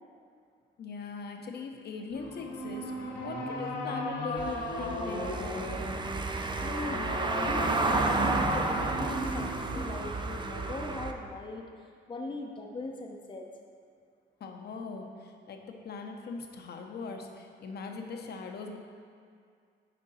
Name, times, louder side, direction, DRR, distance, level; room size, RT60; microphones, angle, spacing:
voice 1, 0.8-2.9 3.2-5.8 14.4-18.8, left 4 dB, 55° left, 3 dB, 0.8 m, -40 dB
sound 1, 2.1-10.1, left 1 dB, 70° left, 1.3 m, -36 dB
Car passing by / Engine, 4.4-11.1, right 3 dB, 25° right, 0.5 m, -31 dB
voice 2, 6.6-11.7 12.1-13.5, left 2 dB, 25° left, 1 dB, 0.6 m, -40 dB
9.3 x 4.5 x 4.2 m, 2.2 s
cardioid pair, 90°, 20 cm